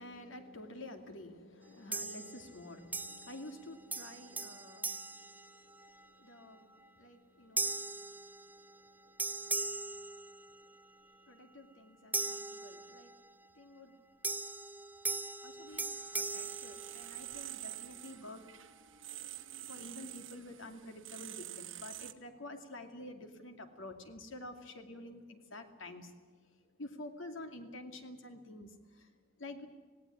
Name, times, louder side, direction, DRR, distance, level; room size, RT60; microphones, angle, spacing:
voice 1, 0.0-14.0 15.4-15.9 16.1-18.4 19.6-26.1 26.4-26.5 26.8-29.7, left 1 dB, 75° left, 6 dB, 2.6 m, -50 dB
sound 1, 1.9-2.6 2.9-3.6 3.9-6.1 6.6-6.9 7.6-8.9 9.2-10.8 12.1-13.3 14.2-17.5, right 3 dB, 10° right, 0.6 m, -39 dB
sound 2, 15.7-22.1, right 13 dB, 75° right, 1.2 m, -47 dB
18.0 x 18.0 x 10.0 m, 1.5 s
head